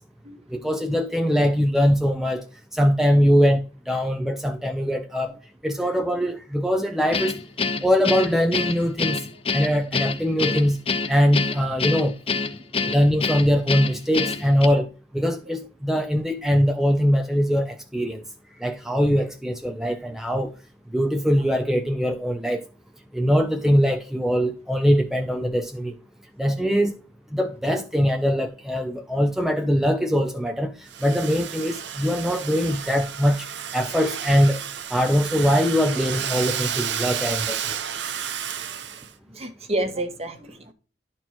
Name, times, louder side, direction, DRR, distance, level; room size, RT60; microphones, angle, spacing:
voice 1, 0.5-2.4 2.7-5.3 5.6-7.4 7.8-9.2 9.5-10.8 11.1-12.1 12.8-14.9 15.1-18.2 18.6-20.5 20.9-22.6 23.1-25.9 26.4-27.0 27.3-34.6 34.9-37.8, equal, ahead, 0.6 m, -22 dB
Guitar, 7.1-14.7, left 4 dB, 35° left, 0.8 m, -26 dB
voice 2, 12.6-12.9 39.3-40.7, right 1 dB, 35° right, 1.3 m, -30 dB
Domestic sounds home sounds, 30.9-39.1, right 9 dB, 80° right, 0.8 m, -31 dB
11.5 x 4.5 x 4.4 m
head